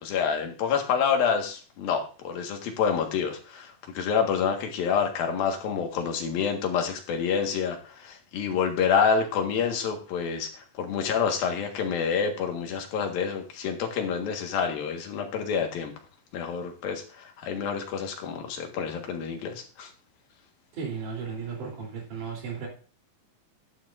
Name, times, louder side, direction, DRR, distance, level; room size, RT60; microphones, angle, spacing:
voice 1, 0.0-15.9 16.3-19.9, left 6 dB, 80° left, 3 dB, 3.5 m, -28 dB
voice 2, 20.7-22.7, right 6 dB, 60° right, -1 dB, 5.0 m, -35 dB
12.0 x 11.0 x 2.6 m, 0.37 s
omnidirectional pair, 4.1 m